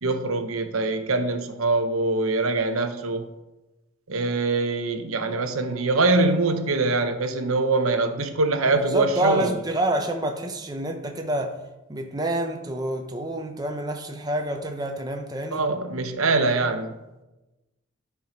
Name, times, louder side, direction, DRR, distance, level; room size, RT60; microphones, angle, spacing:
voice 1, 0.0-3.3 4.1-9.5 15.5-17.0, right 3 dB, 85° right, 7 dB, 0.9 m, -23 dB
voice 2, 8.7-11.6 11.9-15.7, right 1 dB, 20° right, 3 dB, 0.8 m, -28 dB
11.5 x 4.9 x 5.2 m, 1.0 s
head